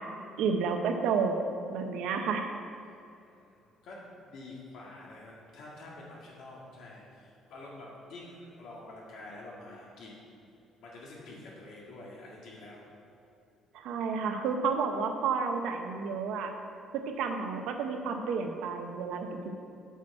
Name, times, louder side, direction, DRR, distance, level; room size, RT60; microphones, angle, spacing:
voice 1, 0.4-1.4 1.7-2.5 13.7-16.5 16.9-19.5, right 5 dB, 75° right, 5 dB, 0.7 m, -31 dB
voice 2, 3.2-4.0 4.3-10.4 10.8-12.8, left 2 dB, 55° left, -3 dB, 1.9 m, -47 dB
8.2 x 6.2 x 4.4 m, 2.7 s
cardioid pair, 180°, 0 cm